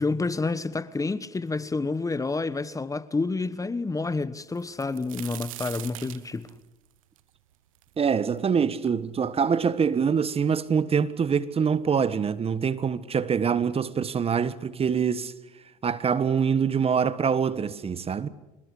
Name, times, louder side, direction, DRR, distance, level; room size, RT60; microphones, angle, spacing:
voice 1, 0.0-6.5, left 3 dB, 20° left, 1.2 m, -29 dB
sound 1, 4.5-8.4 8.9-9.0 9.7-9.8 10.1-10.8 11.6-11.7 12.1-12.3, right 15 dB, 90° right, 0.9 m, -42 dB
voice 2, 8.0-15.3 15.8-18.3, right 6 dB, 35° right, 1.5 m, -25 dB
26.0 x 21.5 x 8.5 m
hypercardioid pair, 70°, 17 cm